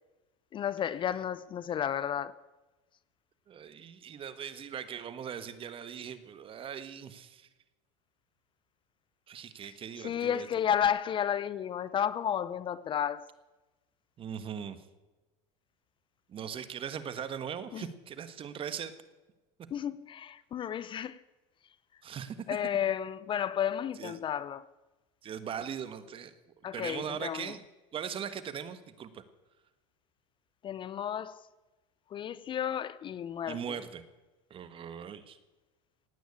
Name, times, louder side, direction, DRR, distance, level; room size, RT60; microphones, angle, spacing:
voice 1, 0.5-2.4 10.0-13.3 17.7-17.8 19.7-21.2 22.5-24.7 26.6-27.5 30.6-31.4 32.1-33.6, left 9 dB, 35° left, 0.5 m, -32 dB
voice 2, 3.5-7.5 9.3-10.5 14.2-14.8 16.3-18.9 22.0-22.4 24.0-24.2 25.2-26.3 26.7-27.6 27.9-29.2 33.5-34.0 34.5-35.4, right 8 dB, 35° right, 1.5 m, -40 dB
17.5 x 9.2 x 8.6 m
supercardioid pair, 115°, 15 cm